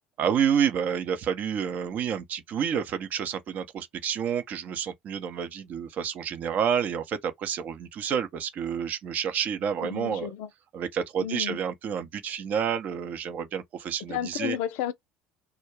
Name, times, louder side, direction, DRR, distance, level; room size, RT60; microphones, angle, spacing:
voice 1, 0.2-10.3 10.7-14.6, right 8 dB, 45° right, 0.6 m, -29 dB
voice 2, 9.8-10.5 11.2-11.6 14.1-14.9, left 10 dB, 60° left, 0.3 m, -32 dB
2.4 x 2.1 x 3.0 m
figure-of-eight pair, 65°, 4 cm